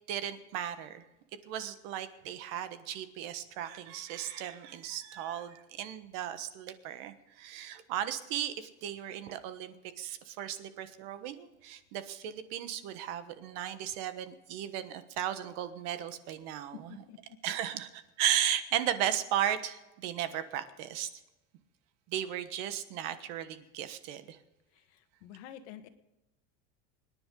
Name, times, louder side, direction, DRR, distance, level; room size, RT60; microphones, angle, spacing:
voice 1, 0.1-1.0 1.5-17.0 17.4-21.1 22.1-24.4, right 10 dB, 50° right, 11 dB, 1.3 m, -35 dB
voice 2, 24.7-25.9, left 10 dB, 70° left, 9 dB, 1.6 m, -49 dB
24.5 x 10.5 x 3.8 m, 1.0 s
cardioid pair, 170°, 34 cm